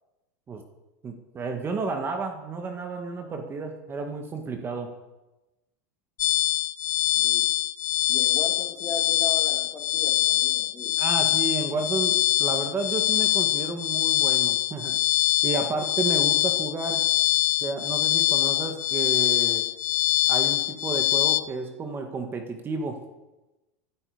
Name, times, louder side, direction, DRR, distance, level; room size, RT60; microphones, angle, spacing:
voice 1, 1.0-4.9 11.0-15.0 15.4-17.0 17.6-19.6 20.3-23.0, right 4 dB, 25° right, 5 dB, 1.9 m, -31 dB
sound 1, 6.2-21.4, left 15 dB, 90° left, 0.8 m, -24 dB
voice 2, 8.1-11.0, left 4 dB, 25° left, 3 dB, 2.6 m, -37 dB
19.0 x 12.5 x 5.2 m, 1.1 s
supercardioid pair, 125°, 9 cm